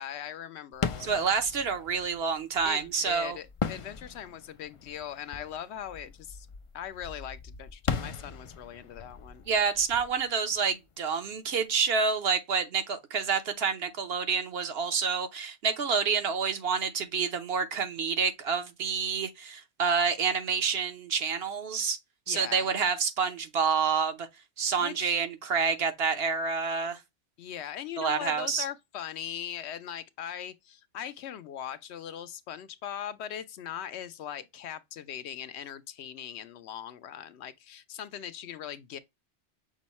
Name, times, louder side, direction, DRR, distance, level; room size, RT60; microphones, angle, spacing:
voice 1, 0.0-1.3 2.6-6.5 6.7-9.5 22.3-22.7 24.8-25.2 27.4-39.0, left 10 dB, 75° left, 0.8 m, -40 dB
sound 1, 0.7-11.3, left 6 dB, 55° left, 0.3 m, -39 dB
voice 2, 1.0-3.4 9.5-22.0 22.3-24.3 24.6-27.0 28.0-28.7, right 6 dB, 65° right, 1.0 m, -28 dB
6.2 x 2.1 x 4.1 m
omnidirectional pair, 1.2 m